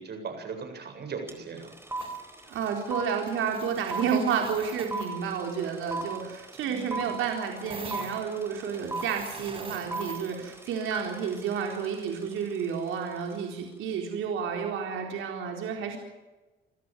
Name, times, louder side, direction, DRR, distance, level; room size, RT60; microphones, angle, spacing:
voice 1, 0.0-1.7 6.6-7.1, right 5 dB, 55° right, 5 dB, 8.0 m, -39 dB
sound 1, 1.3-1.4 1.6-12.7, right 2 dB, 10° right, 4.5 m, -37 dB
sound 2, 2.0-2.2 2.5-2.8 3.1-5.1 7.7-10.3, right 3 dB, 30° right, 5.3 m, -44 dB
voice 2, 2.5-16.0, right 7 dB, 85° right, 2 dB, 4.0 m, -31 dB
27.0 x 14.5 x 9.3 m, 1.2 s
cardioid pair, 90°, 20 cm